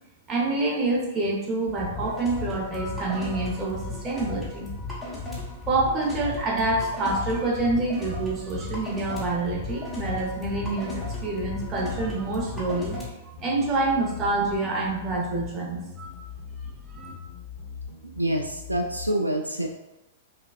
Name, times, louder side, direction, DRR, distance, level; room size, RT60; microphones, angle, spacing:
voice 1, 0.3-4.7 5.0-5.2 5.7-13.0 13.4-16.1 16.9-17.2, right 2 dB, 25° right, -2 dB, 1.0 m, -27 dB
sound 1, 1.7-13.0, left 3 dB, ahead, 1.0 m, -35 dB
sound 2, 9.5-19.1, left 6 dB, 50° left, 0.9 m, -41 dB
voice 2, 18.2-19.7, right 1 dB, 85° right, 3 dB, 0.3 m, -26 dB
5.5 x 2.4 x 2.4 m, 0.98 s
figure-of-eight pair, 100°, 0 cm